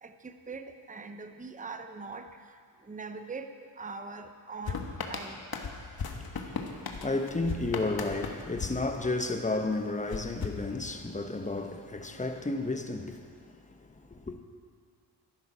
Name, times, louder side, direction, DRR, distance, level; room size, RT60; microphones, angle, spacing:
voice 1, 0.0-5.4, right 4 dB, 15° right, 0.8 m, -42 dB
sound 1, 4.7-9.5 10.1-11.3, left 5 dB, 50° left, 1.5 m, -38 dB
voice 2, 6.1-13.5 13.8-14.4, left 2 dB, 15° left, 1.2 m, -33 dB
13.5 x 10.5 x 5.7 m
cardioid pair, 70°, 47 cm